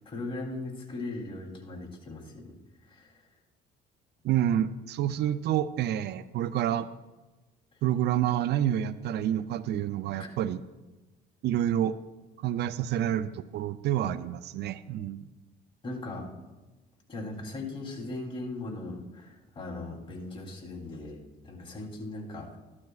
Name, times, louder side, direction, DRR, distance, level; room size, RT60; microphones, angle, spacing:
voice 1, 0.0-2.5 2.8-3.2 10.2-10.3 15.8-16.3 17.1-22.6, left 2 dB, 30° left, -3 dB, 3.2 m, -39 dB
voice 2, 4.2-6.9 7.8-10.6 11.4-12.0 12.4-15.3, right 11 dB, 65° right, 14 dB, 0.4 m, -28 dB
15.0 x 12.0 x 2.4 m, 1.1 s
cardioid pair, 95°, 19 cm